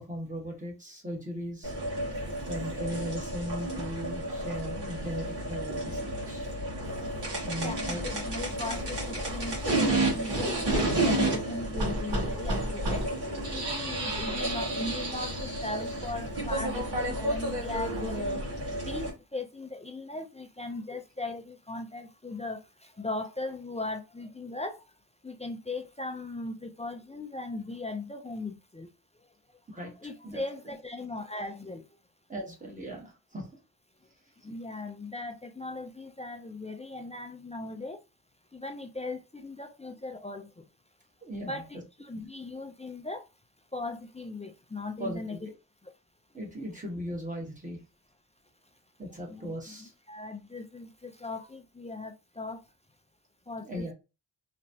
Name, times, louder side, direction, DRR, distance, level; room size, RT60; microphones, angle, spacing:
voice 1, 0.0-1.7 2.5-6.5 7.4-8.0 29.7-29.9 30.2-30.4 32.3-33.5 34.4-34.5 41.2-41.6 45.0-45.5 46.3-47.8 49.0-49.9 53.6-53.9, equal, 20° right, 1.2 m, -38 dB
sound 1, 1.6-19.1, right 1 dB, 75° right, 1.7 m, -31 dB
voice 2, 2.0-2.5 6.4-7.3 7.6-13.0 13.5-18.4 18.8-24.8 25.2-28.9 29.7-31.8 34.4-38.0 38.5-40.6 41.4-43.3 43.7-45.4 45.8-45.9 49.3-52.6 53.5-53.9, left 2 dB, 20° left, 0.3 m, -39 dB
3.3 x 3.0 x 2.6 m
wide cardioid pair, 150°, 41 cm